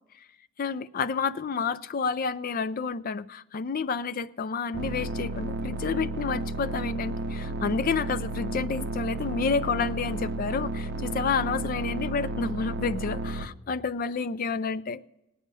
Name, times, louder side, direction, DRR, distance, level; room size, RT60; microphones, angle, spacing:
voice 1, 0.6-15.0, left 5 dB, 40° left, 0.4 m, -30 dB
sound 1, 4.7-13.5, right 2 dB, 50° right, 0.7 m, -32 dB
17.5 x 9.3 x 5.4 m
head